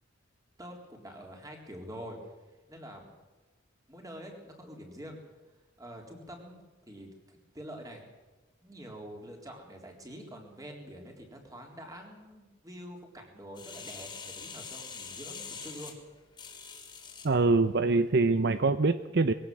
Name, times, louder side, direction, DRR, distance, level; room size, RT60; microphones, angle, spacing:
voice 1, 0.6-2.2 2.7-3.0 3.9-5.2 5.8-8.0 8.6-15.9, equal, 15° right, 2 dB, 3.8 m, -46 dB
sound 1, 13.5-17.3 17.9-18.0, left 5 dB, 20° left, 3.2 m, -44 dB
voice 2, 17.2-19.3, right 3 dB, 55° right, 12 dB, 0.7 m, -24 dB
22.0 x 16.5 x 7.8 m, 1.2 s
head